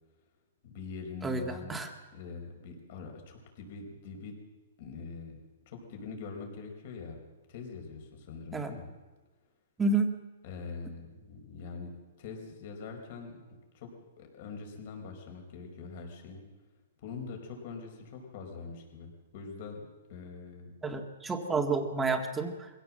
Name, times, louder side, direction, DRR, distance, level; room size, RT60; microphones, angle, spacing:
voice 1, 0.6-1.8 2.1-4.4 4.8-5.4 5.6-7.2 7.5-8.9 10.4-13.4 13.7-13.9 14.2-16.4 17.0-19.8 20.1-20.7, left 4 dB, 45° left, 2 dB, 5.0 m, -43 dB
voice 2, 1.2-1.9 8.5-8.7 9.8-10.1 20.8-22.7, right 3 dB, 10° right, 4 dB, 1.8 m, -30 dB
23.0 x 16.5 x 7.6 m, 1.3 s
hypercardioid pair, 160°, 0 cm